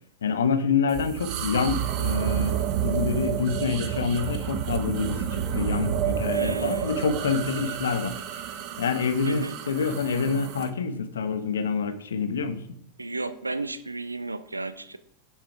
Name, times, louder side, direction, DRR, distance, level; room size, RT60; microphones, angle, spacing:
voice 1, 0.2-8.5 8.8-12.6, left 5 dB, 65° left, 11 dB, 1.0 m, -27 dB
sound 1, 0.9-10.7, right 9 dB, 40° right, 1.1 m, -30 dB
voice 2, 6.3-7.0 9.2-9.6 13.0-15.0, right 2 dB, 80° right, 14 dB, 0.7 m, -33 dB
10.0 x 7.9 x 4.9 m, 0.70 s
figure-of-eight pair, 90°, 0 cm